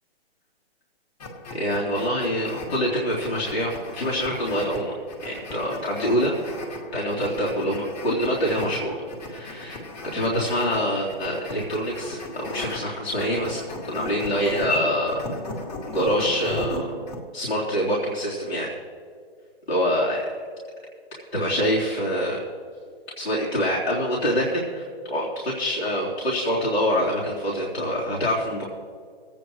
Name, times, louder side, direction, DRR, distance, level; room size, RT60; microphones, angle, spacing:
sound 1, 1.2-17.2, left 1 dB, 40° left, 2.4 m, -37 dB
voice 1, 1.5-5.0 5.2-13.6 13.8-15.2 15.9-16.9 17.3-18.7 19.7-20.3 21.3-22.4 23.2-28.6, equal, 85° left, -6 dB, 3.5 m, -25 dB
24.0 x 9.1 x 3.1 m, 2.2 s
hypercardioid pair, 150°, 31 cm